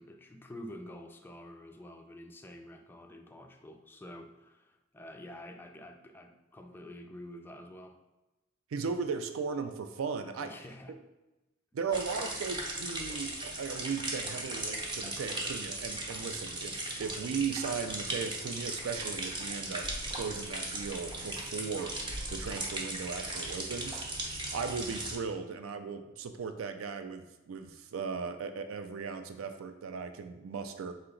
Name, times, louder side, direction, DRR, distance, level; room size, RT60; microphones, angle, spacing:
voice 1, 0.0-8.0 10.4-11.0, left 1 dB, 10° left, 4 dB, 0.3 m, -48 dB
voice 2, 8.7-10.5 11.7-16.7 17.0-21.9 22.3-24.1 24.5-30.9, right 5 dB, 75° right, 8 dB, 0.4 m, -37 dB
sound 1, 11.9-25.2, right 2 dB, 25° right, 0.7 m, -38 dB
sound 2, 19.6-21.8 22.1-22.8, equal, 60° right, 0.8 m, -46 dB
4.2 x 2.9 x 3.7 m, 1.1 s
head